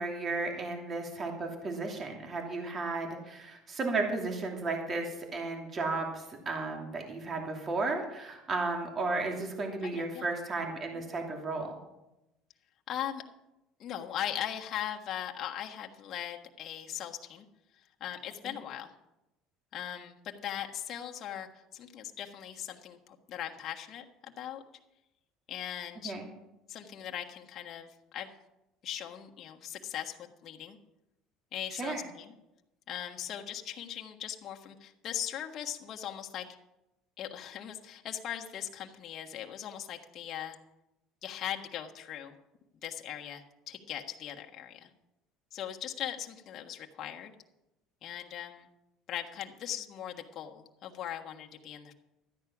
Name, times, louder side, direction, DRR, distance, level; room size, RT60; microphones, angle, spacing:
voice 1, 0.0-11.8 18.4-18.5 26.0-26.3 31.7-32.0, right 3 dB, 35° right, 2 dB, 2.7 m, -34 dB
voice 2, 9.8-10.3 12.9-13.2 13.8-17.4 18.0-18.9 19.7-24.6 25.5-26.1 26.7-28.3 28.8-30.2 30.4-30.8 31.5-32.3 32.9-36.4 37.2-40.6 41.2-42.3 42.8-44.9 45.5-47.3 48.0-48.7 49.1-51.9, left 10 dB, 45° left, 2 dB, 1.4 m, -39 dB
13.0 x 9.8 x 6.0 m, 0.93 s
supercardioid pair, 110°, 0 cm